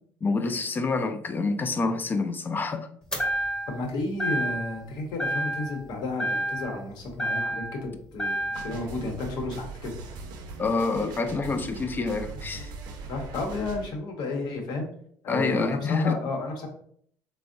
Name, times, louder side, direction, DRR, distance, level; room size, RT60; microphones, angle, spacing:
voice 1, 0.2-2.9 10.6-12.7 15.3-16.2, left 4 dB, 25° left, 8 dB, 0.4 m, -27 dB
sound 1, 3.1-3.9 4.2-4.9 5.2-5.9 6.2-7.8 8.2-8.8, right 1 dB, 10° left, 0.8 m, -29 dB
voice 2, 3.7-8.3 8.6-9.9 13.1-14.9 15.2-16.7, left 2 dB, 65° left, 2 dB, 0.8 m, -32 dB
sound 2, 8.5-13.9, right 3 dB, 65° right, 0.5 m, -40 dB
3.3 x 2.0 x 2.5 m, 0.62 s
supercardioid pair, 80°, 8 cm